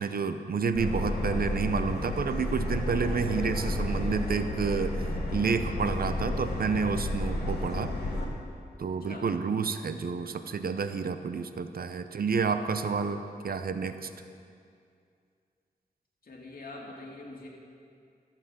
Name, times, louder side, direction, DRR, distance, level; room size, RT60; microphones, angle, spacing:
voice 1, 0.0-7.9 8.8-13.2 13.4-14.1, right 5 dB, 60° right, 9 dB, 0.7 m, -30 dB
Subway metro underground, 0.7-8.2, left 1 dB, 85° left, 1.9 m, -31 dB
voice 2, 12.6-12.9 16.2-17.5, left 2 dB, 60° left, -2 dB, 2.4 m, -44 dB
14.0 x 7.5 x 7.3 m, 2.4 s
wide cardioid pair, 90°, 17 cm